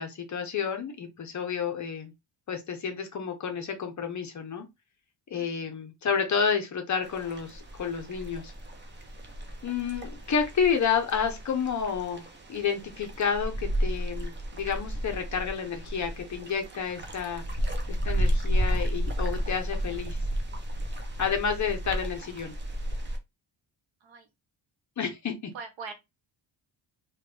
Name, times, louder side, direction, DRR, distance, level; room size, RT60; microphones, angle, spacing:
voice 1, 0.0-2.1 2.5-4.7 5.3-8.5 9.6-17.4 17.9-20.2 21.2-22.5 25.0-25.5, left 6 dB, 40° left, 0.6 m, -30 dB
voice 2, 5.3-5.7 24.0-24.3 25.5-25.9, right 5 dB, 75° right, 1.0 m, -42 dB
sound 1, 7.0-23.2, equal, 25° right, 0.4 m, -32 dB
3.4 x 2.2 x 3.2 m
wide cardioid pair, 180°, 46 cm